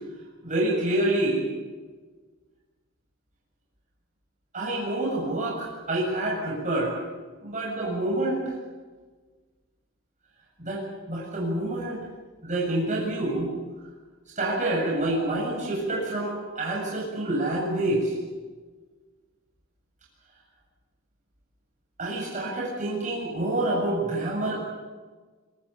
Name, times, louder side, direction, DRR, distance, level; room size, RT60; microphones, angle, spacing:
voice 1, 0.4-1.4 4.5-6.9 7.4-8.4 10.6-12.0 12.4-13.5 14.4-18.1 22.0-24.5, right 1 dB, 35° right, -3 dB, 7.5 m, -27 dB
25.0 x 24.0 x 7.2 m, 1.4 s
head